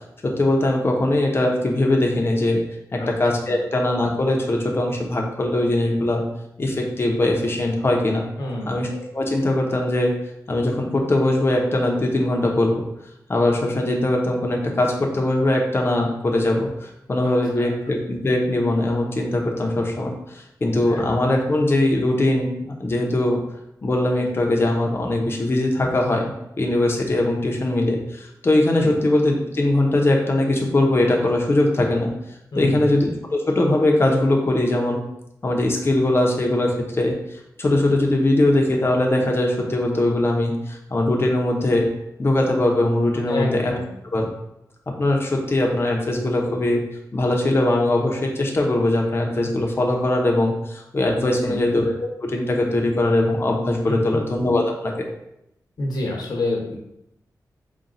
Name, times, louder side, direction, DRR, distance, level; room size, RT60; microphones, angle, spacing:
voice 1, 0.2-2.6 2.9-6.2 6.6-8.2 8.7-10.2 10.5-12.8 13.3-23.4 23.8-32.1 32.6-35.0 35.4-37.1 37.6-41.9 42.2-43.7 44.1-44.3 45.0-46.8 47.1-52.0 52.2-55.1, left 1 dB, 35° left, 0 dB, 0.7 m, -21 dB
voice 2, 8.4-8.8 17.5-17.7 20.9-21.0 28.8-28.9 32.5-32.9 43.3-43.9 51.3-51.6 53.8-54.2 55.8-56.8, left 1 dB, 75° left, -2 dB, 1.0 m, -28 dB
4.0 x 2.3 x 3.9 m, 0.83 s
wide cardioid pair, 115°, 7 cm